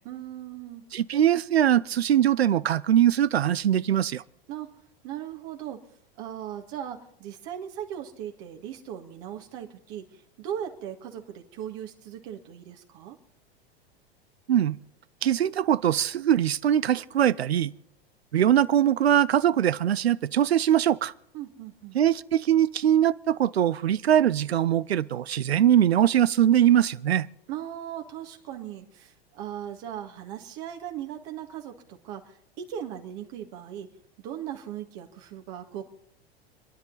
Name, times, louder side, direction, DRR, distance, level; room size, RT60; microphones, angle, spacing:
voice 1, 0.1-0.9 4.5-4.8 5.0-5.8 6.2-13.2 21.3-22.0 27.5-33.9 34.2-35.9, right 10 dB, 50° right, 1.8 m, -38 dB
voice 2, 0.9-4.2 14.5-14.8 15.2-17.7 18.3-21.1 21.9-27.3, right 10 dB, 80° right, 0.7 m, -22 dB
29.5 x 10.5 x 4.0 m
figure-of-eight pair, 95°, 31 cm